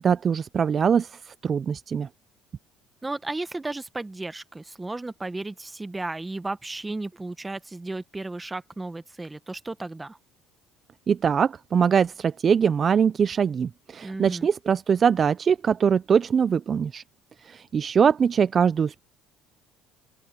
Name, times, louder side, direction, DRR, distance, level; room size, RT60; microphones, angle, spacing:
voice 1, 0.0-2.1 11.1-17.0 17.4-19.0, right 7 dB, 35° right, 0.3 m, -22 dB
voice 2, 3.0-10.2 14.0-14.5, right 2 dB, 10° right, 1.0 m, -34 dB
open air
cardioid pair, 125°, 0 cm